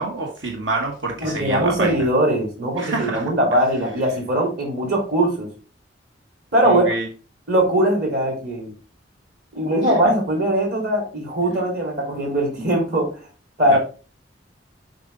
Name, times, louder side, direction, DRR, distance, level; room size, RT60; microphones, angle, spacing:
voice 1, 0.0-2.0 2.8-3.2 6.6-7.1 13.7-13.8, right 3 dB, 75° right, 1 dB, 1.4 m, -26 dB
voice 2, 1.2-5.5 6.5-6.8 7.5-8.7 9.5-13.1 13.6-13.8, right 1 dB, 55° right, 0 dB, 3.9 m, -20 dB
7.8 x 5.0 x 3.8 m, 0.35 s
head